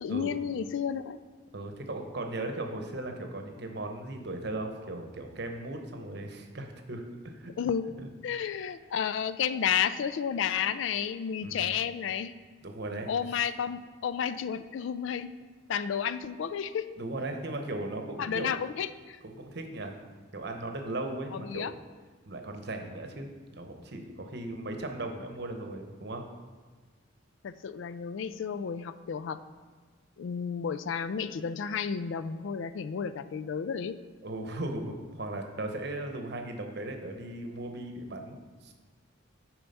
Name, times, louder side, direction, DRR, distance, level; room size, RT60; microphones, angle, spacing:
voice 1, 0.0-1.2 7.6-7.9 8.2-12.3 13.1-15.3 15.7-16.9 18.2-19.2 21.3-21.7 27.4-29.4 30.2-34.0, left 7 dB, 70° left, 13 dB, 0.3 m, -32 dB
voice 2, 1.5-7.5 8.0-8.1 11.4-11.7 12.6-13.1 17.0-18.6 19.2-20.0 20.3-21.7 22.3-26.2 34.2-38.7, right 2 dB, 55° right, 4 dB, 0.9 m, -37 dB
7.6 x 4.6 x 5.4 m, 1.5 s
head